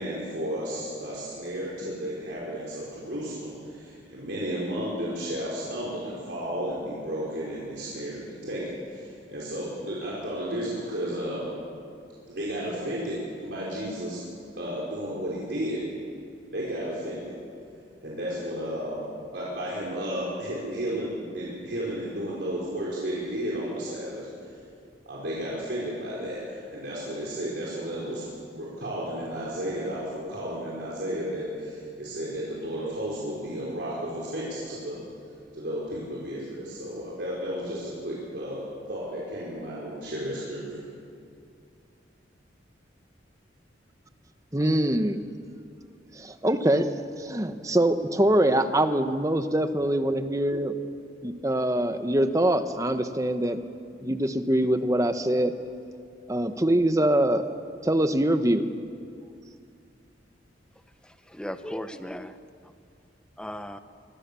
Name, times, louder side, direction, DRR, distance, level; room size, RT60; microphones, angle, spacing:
voice 1, 0.0-11.5 12.3-14.2 14.6-15.8 16.4-17.3 18.0-24.3 25.0-35.0 35.5-38.6 38.9-40.8, equal, 65° right, -6 dB, 5.0 m, -33 dB
voice 2, 44.5-45.2 46.1-46.9 47.2-50.7 51.2-53.6 54.0-55.5 56.3-57.4 57.8-58.7, right 1 dB, 20° right, 9 dB, 1.1 m, -24 dB
voice 3, 61.0-62.4 63.4-63.8, left 1 dB, 5° left, 10 dB, 0.8 m, -36 dB
24.5 x 23.5 x 7.0 m, 2.4 s
head